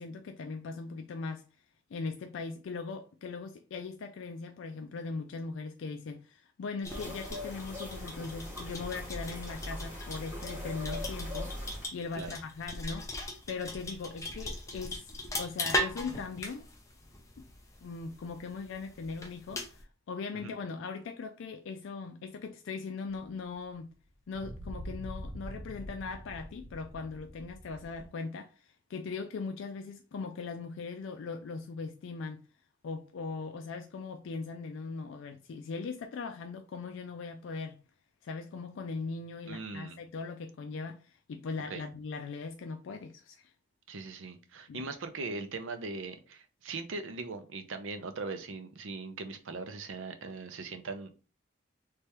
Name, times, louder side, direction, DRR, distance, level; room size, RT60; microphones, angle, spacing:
voice 1, 0.0-1.5 1.9-13.2 13.5-16.7 17.4-17.5 17.8-23.9 24.3-32.5 32.8-37.8 38.2-43.5 44.7-44.9, left 4 dB, 80° left, 0.4 m, -40 dB
sound 1, 6.8-19.8, left 1 dB, 15° left, 0.5 m, -39 dB
sound 2, 6.9-11.9, left 1 dB, 15° right, 2.1 m, -40 dB
sound 3, 23.1-23.2 24.3-28.1, equal, 70° right, 2.0 m, -44 dB
voice 2, 39.5-40.0 41.7-41.8 43.9-51.1, right 3 dB, 90° right, 0.6 m, -40 dB
3.4 x 3.3 x 2.9 m
head